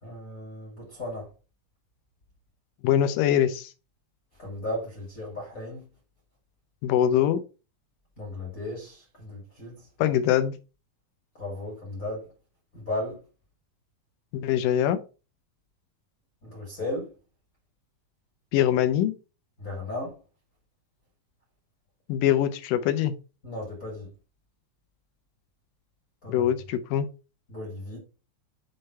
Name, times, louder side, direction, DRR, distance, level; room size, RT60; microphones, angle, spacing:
voice 1, 0.0-1.3 4.4-5.9 8.2-9.8 11.4-12.2 12.7-13.2 16.4-17.1 19.6-20.2 23.4-24.1 26.2-26.5 27.5-28.0, left 1 dB, 30° left, 1.9 m, -35 dB
voice 2, 2.8-3.7 6.8-7.4 10.0-10.5 14.3-15.0 18.5-19.2 22.1-23.1 26.3-27.1, left 10 dB, 75° left, 2.2 m, -23 dB
6.5 x 3.7 x 4.3 m
omnidirectional pair, 4.2 m